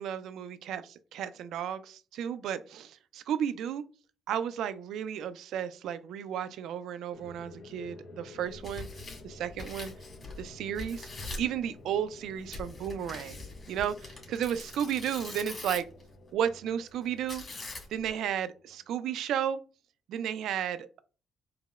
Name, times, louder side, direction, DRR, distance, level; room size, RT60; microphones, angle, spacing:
voice 1, 0.0-3.8 4.3-8.9 9.2-9.9 10.4-11.1 11.4-13.4 13.7-15.9 16.3-17.4 17.9-19.6 20.1-21.0, right 9 dB, 80° right, 0.3 m, -33 dB
sound 1, 7.1-19.2, left 2 dB, 65° left, 0.6 m, -52 dB
Tearing, 8.5-10.5 10.7-11.5 12.5-16.0 17.3-18.1, left 2 dB, 35° left, 1.7 m, -42 dB
4.7 x 2.0 x 2.3 m
cardioid pair, 90°, 0 cm